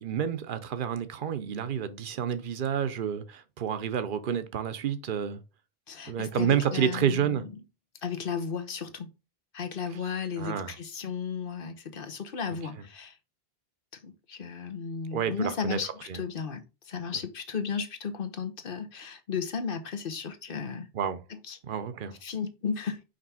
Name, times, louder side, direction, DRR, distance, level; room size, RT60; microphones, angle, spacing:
voice 1, 0.0-5.4 6.1-7.5 10.4-10.7 15.1-15.8 16.1-16.2 20.9-21.2 21.6-22.2, right 8 dB, 55° right, 0.9 m, -29 dB
voice 2, 5.9-7.5 8.0-9.1 9.5-13.2 14.0-20.9 21.3-21.6 22.2-23.0, left 6 dB, 60° left, 1.0 m, -34 dB
5.2 x 3.4 x 5.6 m
omnidirectional pair, 1.1 m